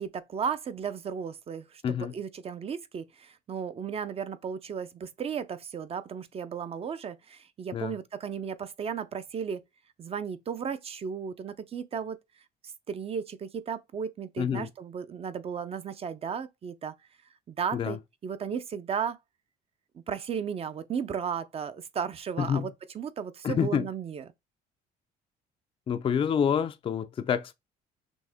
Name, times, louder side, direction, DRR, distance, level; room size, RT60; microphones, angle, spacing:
voice 1, 0.0-9.6 10.0-12.2 12.9-16.9 17.5-19.2 19.9-24.3, right 7 dB, 35° right, 0.5 m, -35 dB
voice 2, 14.4-14.7 17.7-18.0 22.4-22.7 23.4-23.8 25.9-27.5, left 7 dB, 30° left, 0.4 m, -27 dB
6.0 x 2.1 x 3.4 m
cardioid pair, 110°, 17 cm